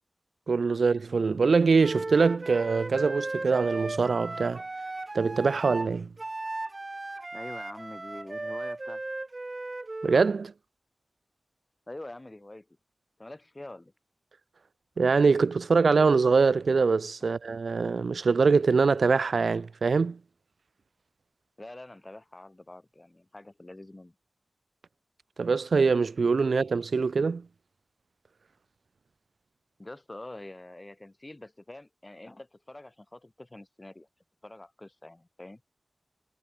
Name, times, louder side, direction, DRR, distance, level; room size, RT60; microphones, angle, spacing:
voice 1, 0.5-4.6 5.1-6.1 10.0-10.5 15.0-20.2 25.4-27.5, right 4 dB, 90° right, 0.7 m, -23 dB
Wind instrument woodwind instrument, 1.8-10.3, right 2 dB, 45° right, 0.8 m, -36 dB
voice 2, 7.3-9.0 11.9-12.7 13.2-13.9 17.2-17.3 21.6-24.1 29.8-34.1 34.4-35.6, left 2 dB, 30° left, 3.2 m, -45 dB
cardioid pair, 45°, 0 cm